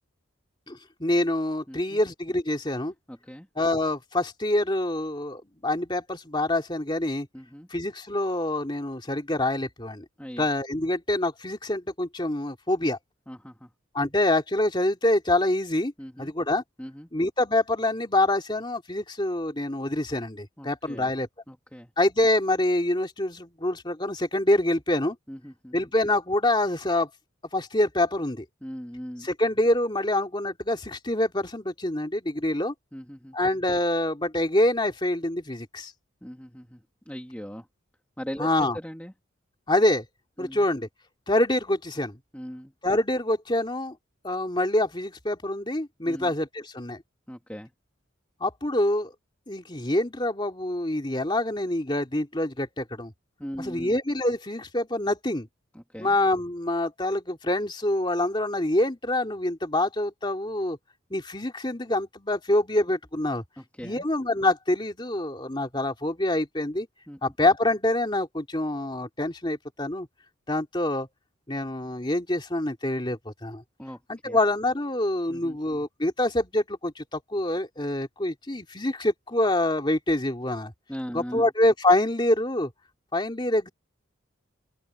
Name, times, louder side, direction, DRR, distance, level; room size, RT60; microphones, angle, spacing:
voice 1, 0.7-2.9 3.6-7.3 7.7-10.0 10.4-13.0 13.9-15.9 16.2-16.6 17.1-21.3 22.0-25.2 25.7-27.1 27.5-28.4 29.2-32.7 33.3-35.9 38.4-38.8 39.7-40.0 40.4-40.9 41.3-42.2 42.8-44.0 44.2-47.0 48.4-49.1 49.5-53.1 53.6-55.5 56.0-60.8 61.1-63.4 63.8-66.9 67.2-70.1 70.5-71.1 71.5-73.6 74.1-80.7 81.1-82.7 83.1-83.7, left 1 dB, 20° left, 2.8 m, -26 dB
voice 2, 1.7-2.0 3.1-3.5 7.3-7.7 10.2-10.5 13.3-13.7 16.0-16.3 16.8-17.1 20.6-21.1 21.5-21.9 25.3-25.8 28.6-29.3 32.9-33.4 36.2-37.7 38.2-39.1 40.4-40.7 42.3-42.7 46.0-46.3 47.3-47.7 53.4-53.9 55.7-56.2 63.6-64.0 67.1-67.2 73.8-74.4 75.3-75.6 80.9-81.5, equal, 5° left, 2.3 m, -39 dB
open air
head